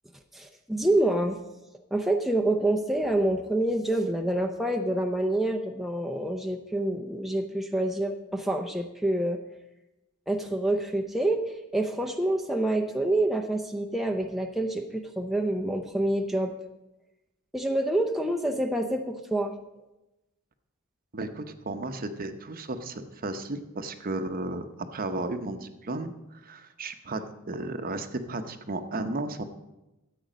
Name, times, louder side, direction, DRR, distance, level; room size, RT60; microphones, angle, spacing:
voice 1, 0.3-1.4 1.9-9.4 10.3-16.5 17.5-19.6, right 1 dB, ahead, 2 dB, 0.6 m, -27 dB
voice 2, 21.1-24.7 24.9-26.1 26.4-27.2 27.5-29.4, right 2 dB, 40° right, 8 dB, 0.8 m, -34 dB
13.0 x 8.4 x 5.1 m, 0.98 s
head